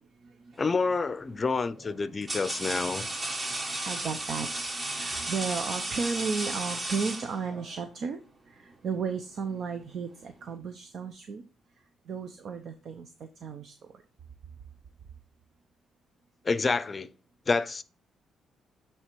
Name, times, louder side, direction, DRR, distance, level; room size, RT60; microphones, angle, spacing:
voice 1, 0.6-3.1 16.4-17.1 17.5-17.8, left 4 dB, 30° left, 0.5 m, -28 dB
sound 1, 0.6-1.0 1.8-7.7, right 2 dB, 30° right, 1.4 m, -34 dB
voice 2, 3.9-8.2 8.5-11.4 12.1-13.1 13.4-13.7, right 5 dB, 60° right, 0.7 m, -34 dB
8.5 x 3.4 x 4.6 m
cardioid pair, 90°, 0 cm